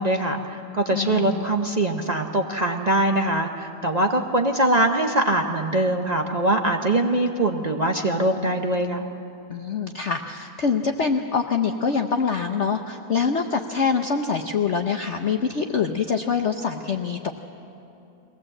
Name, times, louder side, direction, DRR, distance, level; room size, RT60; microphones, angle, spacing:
voice 1, 0.0-9.1, right 1 dB, 75° right, 3 dB, 0.3 m, -22 dB
voice 2, 0.9-1.5 9.5-17.3, left 5 dB, 60° left, 4 dB, 0.7 m, -25 dB
22.5 x 18.0 x 7.7 m, 2.9 s
omnidirectional pair, 2.1 m